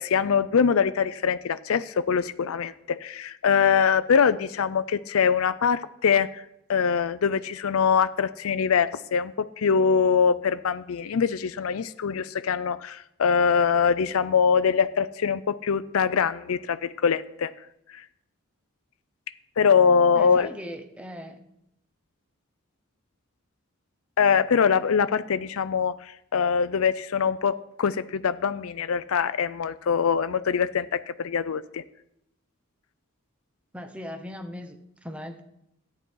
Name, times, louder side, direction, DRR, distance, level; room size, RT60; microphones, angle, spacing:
voice 1, 0.0-6.4 6.7-17.5 17.9-18.0 19.6-20.5 24.2-31.8, left 6 dB, 85° left, 12 dB, 0.5 m, -23 dB
voice 2, 20.1-21.5 33.7-35.4, equal, 5° right, 6 dB, 0.9 m, -39 dB
14.0 x 9.6 x 4.6 m, 0.80 s
head